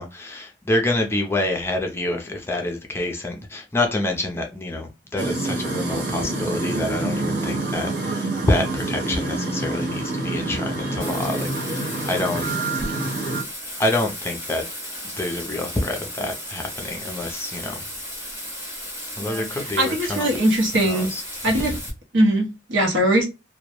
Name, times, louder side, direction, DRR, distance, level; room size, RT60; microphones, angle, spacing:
voice 1, 0.0-12.5 13.0-13.1 13.8-14.7 15.0-17.8 19.2-20.4 20.8-21.2 21.5-21.8, left 1 dB, 15° left, 0.4 m, -27 dB
sound 1, 5.2-13.4, right 2 dB, 60° right, 1.0 m, -27 dB
Bathtub (filling or washing), 11.0-21.9, equal, 10° right, 0.8 m, -35 dB
voice 2, 19.8-21.1 21.4-21.7 22.1-23.3, right 1 dB, 85° right, 0.8 m, -20 dB
2.2 x 2.0 x 2.8 m
head